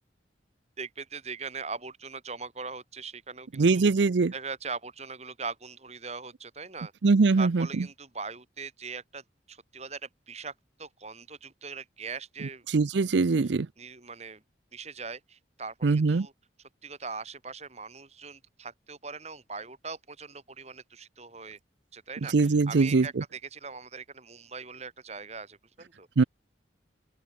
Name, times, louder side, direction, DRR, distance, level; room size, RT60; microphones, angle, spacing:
voice 1, 0.8-3.8 4.3-6.9 7.4-9.2 9.5-10.5 10.8-12.6 13.4-14.4 14.7-16.3 16.6-21.6 21.9-25.6 26.0-26.3, right 4 dB, 35° right, 3.4 m, -41 dB
voice 2, 3.6-4.3 7.0-7.7 12.7-13.7 15.8-16.3 22.3-23.1 26.2-26.3, right 4 dB, 70° right, 0.5 m, -22 dB
open air
head